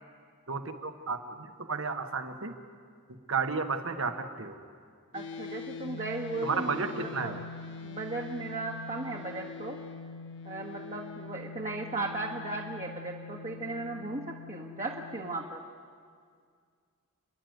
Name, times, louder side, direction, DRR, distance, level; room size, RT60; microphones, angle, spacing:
voice 1, 0.5-2.6 3.1-4.6 6.4-7.4, right 4 dB, 65° right, 7 dB, 1.5 m, -33 dB
sound 1, 5.1-15.4, left 4 dB, 60° left, 1.0 m, -43 dB
voice 2, 5.1-7.3 7.8-9.8 10.4-15.7, right 2 dB, 35° right, -1 dB, 1.4 m, -36 dB
29.5 x 11.0 x 9.4 m, 2.1 s
head